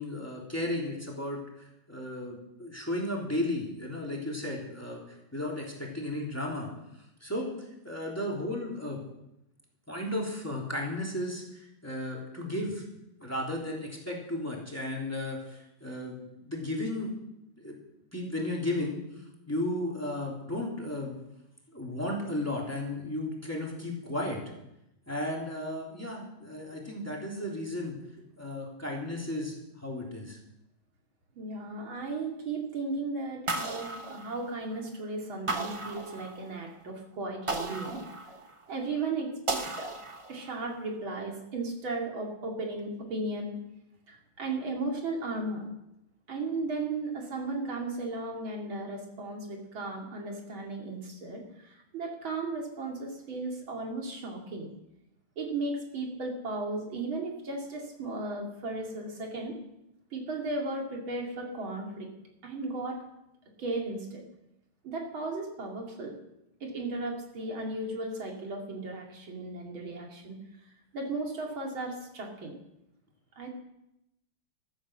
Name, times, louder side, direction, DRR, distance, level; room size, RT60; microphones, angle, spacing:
voice 1, 0.0-6.7 7.2-7.5 7.8-9.0 9.9-12.8 13.2-17.1 17.6-17.7 18.1-19.0 19.5-21.1 21.7-24.4 25.1-28.0 28.4-30.4 33.9-34.0, left 1 dB, 5° left, -2 dB, 3.3 m, -34 dB
voice 2, 31.3-38.0 38.7-39.9 40.3-43.6 44.1-45.6 46.3-54.7 55.4-59.6 60.1-62.1 62.4-63.0 63.6-64.2 64.8-66.2 66.6-70.4 70.9-72.6 73.4-73.5, right 2 dB, 70° right, 0 dB, 3.4 m, -35 dB
sound 1, 33.5-34.8 35.5-36.7 37.5-38.7 39.5-40.6, right 2 dB, 25° right, 0.7 m, -35 dB
15.5 x 13.5 x 6.3 m, 0.86 s
omnidirectional pair, 2.2 m